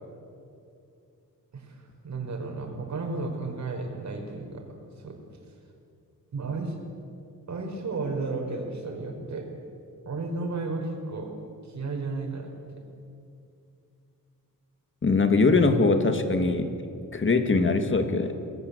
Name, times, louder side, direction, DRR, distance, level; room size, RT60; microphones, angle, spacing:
voice 1, 1.5-4.6 5.0-5.1 6.3-6.8 7.5-9.4 10.1-11.3 11.6-12.8, right 3 dB, 50° right, 3 dB, 5.4 m, -33 dB
voice 2, 15.0-16.7 17.1-18.3, left 3 dB, 35° left, 7 dB, 2.3 m, -22 dB
29.0 x 20.5 x 8.4 m, 2.6 s
wide cardioid pair, 135°, 34 cm